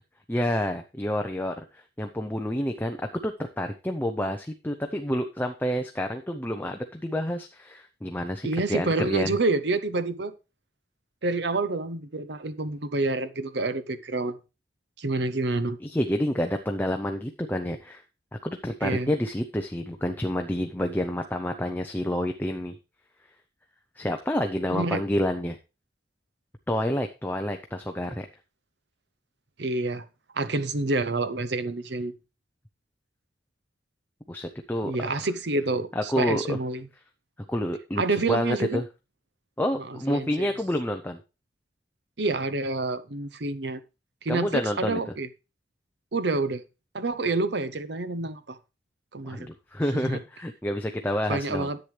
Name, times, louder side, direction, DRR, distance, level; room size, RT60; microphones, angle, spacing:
voice 1, 0.3-3.0 3.2-9.3 15.8-18.0 18.4-22.8 24.0-25.6 26.7-28.3 34.3-34.9 35.2-35.3 36.0-36.6 37.5-38.0 38.3-38.8 39.6-41.2 44.3-45.0 49.2-51.7, left 1 dB, 10° left, 0.6 m, -28 dB
voice 2, 8.4-10.3 11.2-14.4 15.0-15.8 18.8-19.1 24.7-25.0 29.6-30.0 30.3-32.1 34.8-36.9 38.0-38.8 39.8-40.5 42.2-43.8 44.2-45.3 46.1-46.6 46.9-48.6 49.1-49.5 49.9-50.2 51.3-51.8, right 2 dB, 65° right, 0.8 m, -28 dB
10.5 x 8.1 x 3.3 m
head